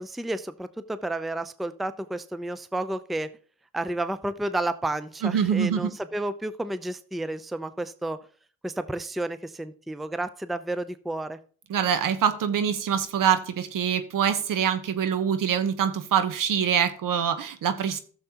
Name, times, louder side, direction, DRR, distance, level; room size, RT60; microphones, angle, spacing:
voice 1, 0.0-3.3 3.7-8.2 8.6-11.4, right 1 dB, ahead, 13 dB, 0.6 m, -31 dB
voice 2, 5.2-5.9 11.7-18.0, right 8 dB, 60° right, 10 dB, 1.1 m, -25 dB
13.5 x 6.9 x 2.9 m, 0.43 s
supercardioid pair, 55°, 36 cm